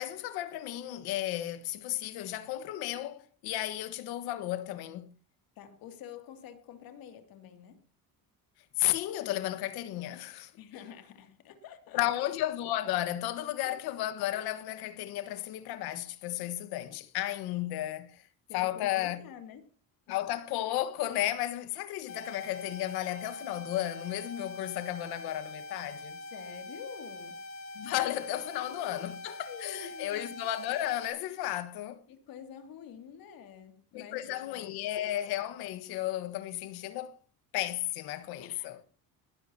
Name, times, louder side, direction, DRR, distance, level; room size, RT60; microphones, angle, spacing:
voice 1, 0.0-5.1 8.8-10.5 11.9-18.2 18.5-19.2 20.1-26.2 27.7-32.0 33.9-37.2 37.5-38.8, left 14 dB, 90° left, 1.6 m, -33 dB
voice 2, 5.6-7.8 10.6-12.0 18.5-19.7 26.3-27.4 28.4-29.1 29.5-30.4 32.1-34.9 38.4-38.9, left 8 dB, 70° left, 2.7 m, -48 dB
sound 1, 22.1-31.1, left 2 dB, 40° left, 2.5 m, -44 dB
19.5 x 12.5 x 2.9 m
cardioid pair, 130°, 37 cm